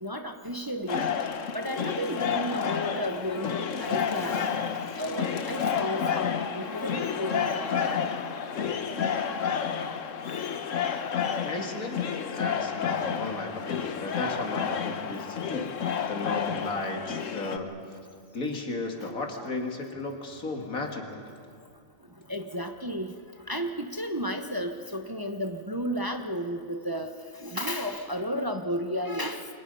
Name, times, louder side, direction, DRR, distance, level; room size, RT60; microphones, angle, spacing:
voice 1, 0.0-1.1 1.5-4.5 5.0-8.1 10.3-10.4 12.9-13.1 15.2-15.3 19.0-19.1 19.4-19.5 22.3-23.1 23.5-29.5, equal, 15° right, 5 dB, 1.1 m, -33 dB
sound 1, 0.9-17.6, left 7 dB, 65° left, 1.4 m, -30 dB
voice 2, 11.4-12.0 12.3-15.8 16.1-17.7 18.3-21.2, left 3 dB, 85° left, 3 dB, 2.7 m, -34 dB
29.0 x 24.0 x 5.5 m, 2.1 s
omnidirectional pair, 1.4 m